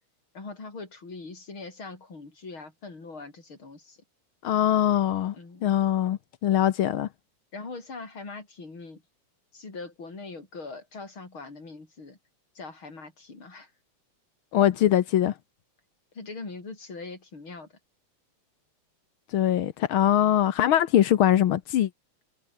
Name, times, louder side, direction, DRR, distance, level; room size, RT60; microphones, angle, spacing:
voice 1, 0.3-4.0 5.3-5.6 7.5-9.0 9.5-12.2 12.6-13.7 16.1-17.7, left 3 dB, 40° left, 6.3 m, -41 dB
voice 2, 4.4-5.3 5.6-7.1 14.5-15.3 19.3-21.9, left 11 dB, 70° left, 1.2 m, -22 dB
omnidirectional pair, 3.6 m